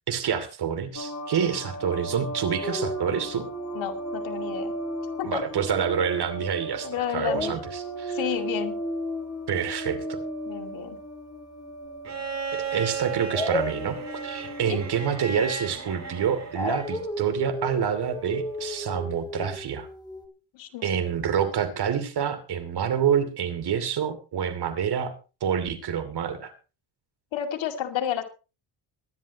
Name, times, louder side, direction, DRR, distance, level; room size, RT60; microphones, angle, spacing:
voice 1, 0.1-3.4 5.2-8.2 9.5-10.2 12.7-14.0 14.2-19.9 20.8-25.1 25.4-26.5, right 8 dB, 55° right, 10 dB, 2.8 m, -27 dB
sound 1, 0.9-19.0, right 2 dB, 35° left, 2.8 m, -40 dB
Dog, 2.6-6.8 7.2-12.2 13.3-20.3, left 1 dB, 10° left, 2.8 m, -35 dB
voice 2, 3.7-4.7 5.2-5.4 6.8-7.6 8.1-8.8 10.5-11.0 14.7-14.8 20.5-20.9 27.3-28.2, left 10 dB, 70° left, 6 dB, 2.4 m, -31 dB
Bowed string instrument, 12.0-17.1 18.5-18.6, right 5 dB, 35° right, 3.6 m, -35 dB
23.0 x 10.5 x 3.0 m, 0.33 s
cardioid pair, 90°, 48 cm